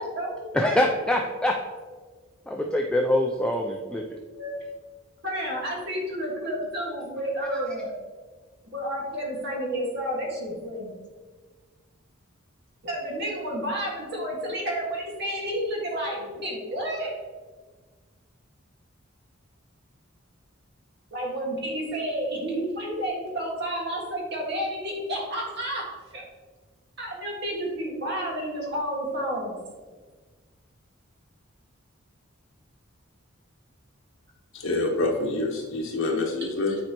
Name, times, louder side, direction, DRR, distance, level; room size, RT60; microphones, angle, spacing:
voice 1, 0.0-0.5 4.3-4.5 5.2-8.0 8.7-11.0 12.8-17.1 21.1-25.8 26.1-26.2 27.0-29.6, equal, 55° right, -2 dB, 1.7 m, -30 dB
voice 2, 0.5-1.5 2.5-4.0, left 1 dB, 5° left, 1 dB, 0.3 m, -24 dB
voice 3, 34.5-36.8, left 2 dB, 75° left, 1 dB, 1.2 m, -26 dB
9.2 x 4.4 x 2.9 m, 1.4 s
head